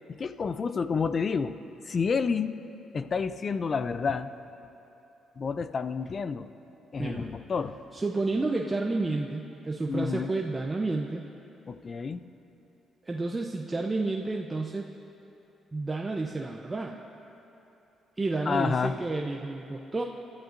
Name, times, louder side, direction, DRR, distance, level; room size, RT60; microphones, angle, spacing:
voice 1, 0.1-1.6 1.9-2.5 2.9-4.3 5.4-6.5 6.9-7.7 9.9-10.3 11.7-12.2 18.5-18.9, left 5 dB, 40° left, 12 dB, 0.5 m, -29 dB
voice 2, 7.0-7.3 7.9-11.2 13.1-14.9 15.7-17.0 18.2-20.0, right 3 dB, 20° right, 1 dB, 0.6 m, -30 dB
26.5 x 12.0 x 2.6 m, 3.0 s
cardioid pair, 90°, 0 cm